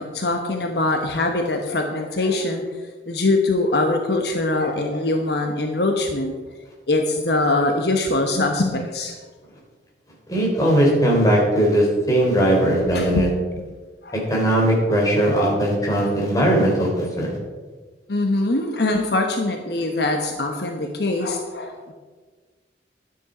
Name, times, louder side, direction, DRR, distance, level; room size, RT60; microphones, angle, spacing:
voice 1, 0.0-2.6 3.1-6.3 6.9-9.2 12.9-13.3 14.0-14.2 18.1-21.9, left 2 dB, 65° left, 4 dB, 1.1 m, -22 dB
voice 2, 10.3-13.3 14.3-17.3, right 1 dB, 20° left, -3 dB, 3.5 m, -19 dB
11.5 x 9.6 x 5.0 m, 1.4 s
head